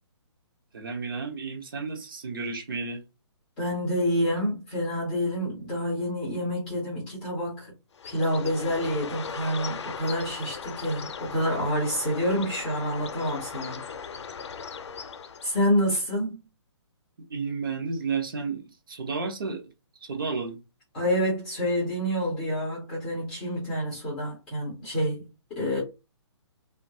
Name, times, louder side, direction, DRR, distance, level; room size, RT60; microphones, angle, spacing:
voice 1, 0.7-3.0 17.3-19.7 20.0-20.6, right 4 dB, 45° right, 0.6 m, -32 dB
voice 2, 3.6-7.7 8.0-13.8 15.4-16.4 20.9-25.8, equal, 5° left, 0.3 m, -28 dB
Bird, 7.9-15.7, left 6 dB, 70° left, 0.5 m, -38 dB
2.9 x 2.2 x 2.6 m
hypercardioid pair, 175°, 15 cm